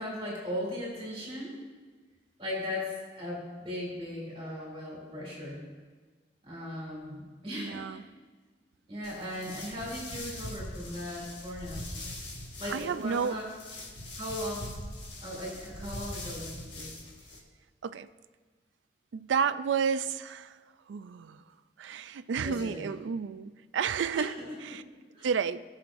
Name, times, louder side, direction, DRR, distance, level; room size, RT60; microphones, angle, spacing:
voice 1, 0.0-1.5 2.4-5.7 6.4-8.0 8.9-11.8 12.6-13.5 14.1-14.8 15.2-16.9 22.4-22.9 24.1-24.8 25.1-25.3, left 1 dB, 30° right, -4 dB, 2.8 m, -38 dB
voice 2, 7.5-8.0 12.6-13.4 17.8-18.1 19.1-20.6 20.9-21.4 21.8-24.8 25.2-25.6, right 6 dB, 80° right, 13 dB, 0.4 m, -31 dB
sound 1, 9.0-17.4, left 1 dB, 80° left, 1.5 m, -42 dB
18.5 x 6.4 x 2.6 m, 1.4 s
head